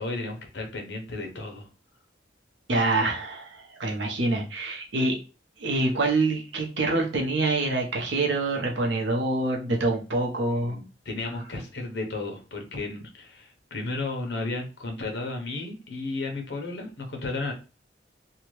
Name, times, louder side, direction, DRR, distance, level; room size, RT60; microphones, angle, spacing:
voice 1, 0.0-1.7 10.6-17.5, left 2 dB, 70° left, 3 dB, 0.8 m, -33 dB
voice 2, 2.7-5.2 5.6-10.8, right 2 dB, 90° right, 1 dB, 0.8 m, -26 dB
2.8 x 2.2 x 3.0 m, 0.33 s
head